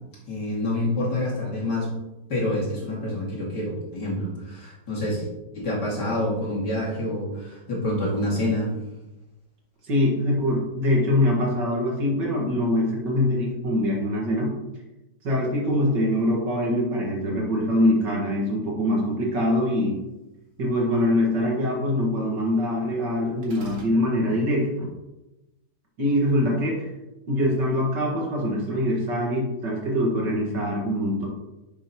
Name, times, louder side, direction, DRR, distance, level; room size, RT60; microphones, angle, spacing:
voice 1, 0.3-1.9 2.3-5.3 5.5-8.7, left 1 dB, 60° left, -5 dB, 3.0 m, -27 dB
voice 2, 9.9-14.5 15.2-20.0 20.6-24.9 26.0-26.9 27.3-31.3, left 1 dB, 65° right, -2 dB, 2.3 m, -23 dB
sound 1, 23.4-24.0, right 1 dB, 40° right, 2.1 m, -42 dB
10.5 x 6.9 x 3.0 m, 1.0 s
omnidirectional pair, 2.1 m